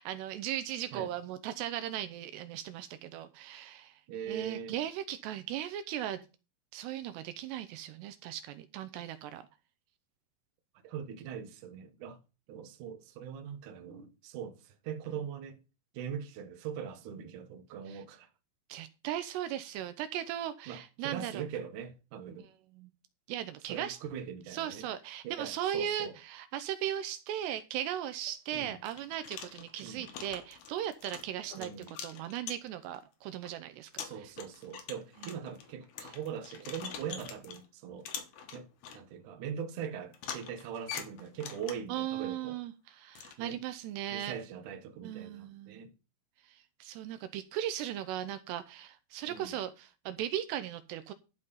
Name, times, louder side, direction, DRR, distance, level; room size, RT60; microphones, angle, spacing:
voice 1, 0.0-3.9 4.3-6.3 6.7-9.4 17.9-18.0 18.7-21.4 22.8-22.9 23.3-24.0 24.5-31.7 32.0-34.1 35.2-35.3 41.9-44.4 45.0-45.8 46.5-51.1, right 11 dB, 80° right, 2.7 m, -37 dB
voice 2, 4.1-4.8 10.8-12.2 12.5-15.6 15.9-18.3 20.7-22.5 23.7-24.9 25.2-26.2 28.5-28.8 29.8-30.1 31.6-31.9 34.0-38.1 38.5-38.7 38.9-42.6 43.4-43.6 44.1-45.9 49.3-49.6, right 8 dB, 65° right, 2.2 m, -41 dB
sound 1, 28.2-28.3 28.9-33.0 33.5-33.6 33.9-37.7 38.1-39.0 40.1-42.0 43.2-43.4, left 8 dB, 70° left, 3.1 m, -44 dB
12.0 x 5.5 x 5.5 m
omnidirectional pair, 5.0 m